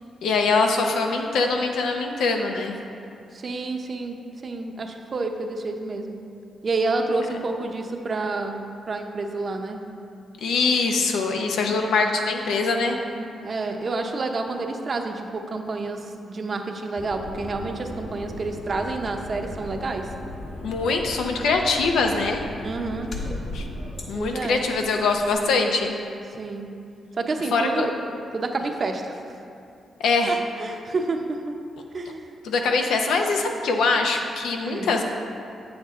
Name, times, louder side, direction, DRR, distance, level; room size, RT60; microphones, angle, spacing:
voice 1, 0.2-2.8 10.4-13.0 20.6-22.4 23.5-23.6 24.1-26.0 27.5-27.9 30.0-30.4 32.4-35.0, left 4 dB, 90° left, 3 dB, 0.7 m, -23 dB
voice 2, 3.3-4.2 4.4-6.1 6.6-9.8 13.1-20.1 22.6-23.1 24.1-24.6 26.3-26.7 27.2-28.0 28.3-29.2 30.3-31.5 31.9-32.4 34.6-34.9, right 3 dB, 40° right, 4 dB, 0.7 m, -29 dB
sound 1, 16.9-25.3, left 1 dB, 50° left, 1.3 m, -37 dB
8.6 x 7.3 x 3.7 m, 2.5 s
cardioid pair, 100°, 0 cm